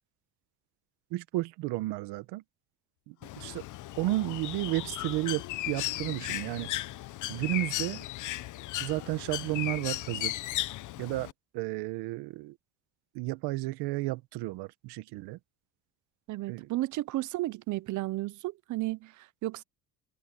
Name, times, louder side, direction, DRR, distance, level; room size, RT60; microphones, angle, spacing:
voice 1, 1.1-2.4 3.1-3.6 4.0-6.7 7.3-8.0 8.8-10.4 11.0-12.5 13.1-15.4 16.5-16.7, right 19 dB, 85° right, 1.4 m, -33 dB
sound 1, 3.2-8.0, left 18 dB, 80° left, 3.3 m, -51 dB
Bird, 3.2-11.3, left 16 dB, 50° left, 0.7 m, -36 dB
voice 2, 16.3-19.6, right 17 dB, 50° right, 0.6 m, -33 dB
open air
cardioid pair, 140°, 39 cm